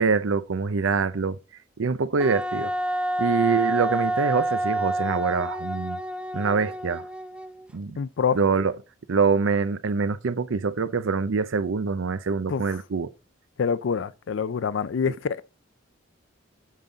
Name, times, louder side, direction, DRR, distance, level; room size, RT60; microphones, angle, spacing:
voice 1, 0.0-1.4 1.8-2.7 3.2-6.0 6.3-7.1 7.7-8.0 8.3-8.7 9.1-13.1 15.1-15.2, right 5 dB, 85° right, 0.6 m, -24 dB
Wind instrument woodwind instrument, 2.2-7.7, right 1 dB, 5° right, 0.3 m, -28 dB
voice 2, 8.0-8.4 12.5-12.6 13.6-15.4, left 6 dB, 65° left, 0.4 m, -26 dB
7.5 x 5.3 x 4.0 m
head